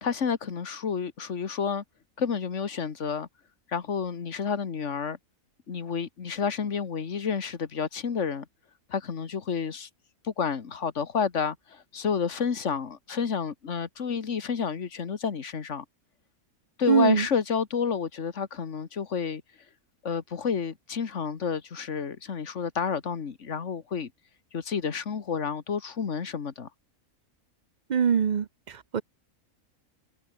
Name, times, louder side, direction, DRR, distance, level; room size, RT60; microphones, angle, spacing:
voice 1, 0.0-1.8 2.2-3.3 3.7-5.2 5.7-8.5 8.9-9.9 10.2-15.8 16.8-19.4 20.0-24.1 24.5-26.7, left 6 dB, 55° left, 1.8 m, -30 dB
voice 2, 16.9-17.3 27.9-29.0, right 7 dB, 45° right, 0.6 m, -23 dB
omnidirectional pair, 1.5 m